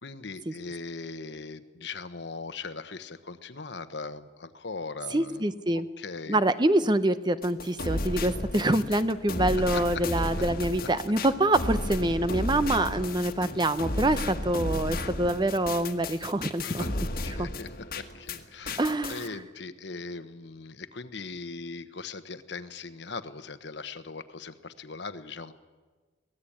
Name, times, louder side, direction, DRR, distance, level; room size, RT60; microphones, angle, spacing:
voice 1, 0.0-5.5 6.0-6.4 9.4-10.0 10.8-10.9 16.6-18.8 19.1-25.5, left 4 dB, 65° left, 11 dB, 1.1 m, -39 dB
voice 2, 5.1-5.9 6.3-16.8 17.4-17.5 18.8-19.3, right 1 dB, 25° right, 12 dB, 0.7 m, -26 dB
sound 1, 7.4-18.4 18.7-19.3, left 1 dB, 50° left, 1.5 m, -33 dB
24.0 x 17.5 x 8.7 m, 1.4 s
head